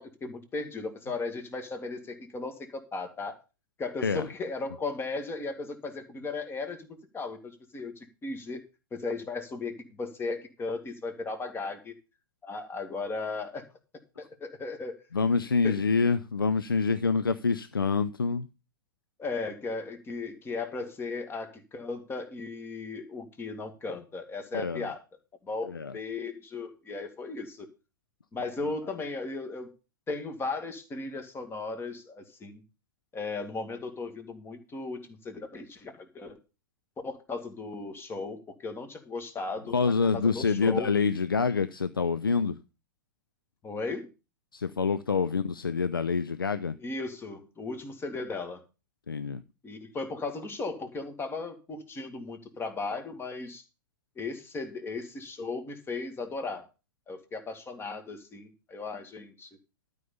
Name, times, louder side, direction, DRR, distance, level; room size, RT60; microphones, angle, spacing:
voice 1, 0.0-3.4 3.8-8.6 8.9-11.9 12.4-13.7 14.2-15.0 15.6-15.8 19.2-25.0 25.4-27.7 28.3-29.7 30.1-32.6 33.1-36.4 37.0-40.9 43.6-44.1 46.8-48.6 49.6-53.6 54.2-56.7 57.1-59.5, left 3 dB, 20° left, 2.2 m, -36 dB
voice 2, 15.1-18.5 24.5-24.9 25.7-25.9 39.7-42.5 44.5-46.8 49.1-49.4, left 5 dB, 85° left, 0.6 m, -26 dB
12.5 x 5.4 x 7.0 m
figure-of-eight pair, 90°, 11 cm